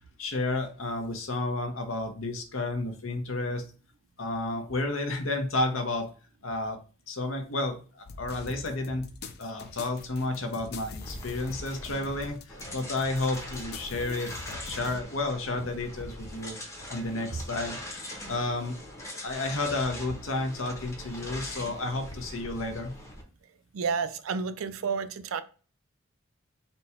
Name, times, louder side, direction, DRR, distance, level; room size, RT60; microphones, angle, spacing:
voice 1, 0.2-3.7 4.2-6.1 6.4-6.8 7.1-9.1 9.4-16.6 16.9-17.8 18.3-18.8 19.2-23.0, left 2 dB, 75° left, 0.8 m, -31 dB
sound 1, 8.0-15.0, left 3 dB, 50° left, 0.5 m, -44 dB
sound 2, 11.0-23.2, left 1 dB, 15° left, 0.8 m, -42 dB
voice 2, 23.7-25.4, right 5 dB, 85° right, 0.4 m, -30 dB
4.2 x 2.2 x 4.2 m
head